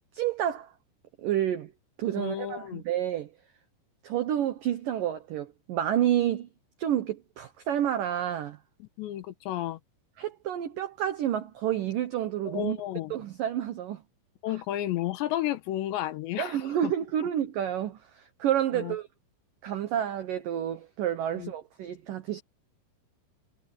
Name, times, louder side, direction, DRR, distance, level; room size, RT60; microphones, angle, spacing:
voice 1, 0.1-0.7 1.2-1.7 2.0-3.3 4.0-6.5 6.8-8.6 10.2-12.8 13.1-14.0 16.4-19.1 19.6-22.4, right 11 dB, 75° right, 2.0 m, -29 dB
voice 2, 2.2-2.8 8.8-9.8 12.5-13.1 14.4-16.9 18.7-18.9 21.3-21.5, left 13 dB, 75° left, 3.0 m, -32 dB
omnidirectional pair, 5.5 m